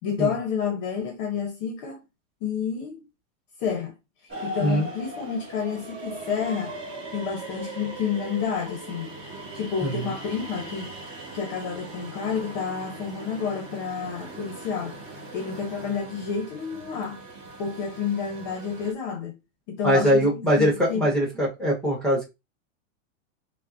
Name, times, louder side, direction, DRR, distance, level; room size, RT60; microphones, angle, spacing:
voice 1, 0.0-2.0 2.4-3.0 3.6-3.9 4.2-6.7 7.1-9.1 9.5-10.9 11.3-15.0 15.3-17.2 17.6-19.4 19.7-21.1, left 6 dB, 40° left, 0.7 m, -30 dB
sound 1, 4.3-18.9, right 2 dB, 30° right, 1.7 m, -39 dB
voice 2, 9.8-10.1 19.8-22.2, equal, ahead, 0.8 m, -22 dB
5.3 x 2.1 x 2.5 m
supercardioid pair, 155°, 41 cm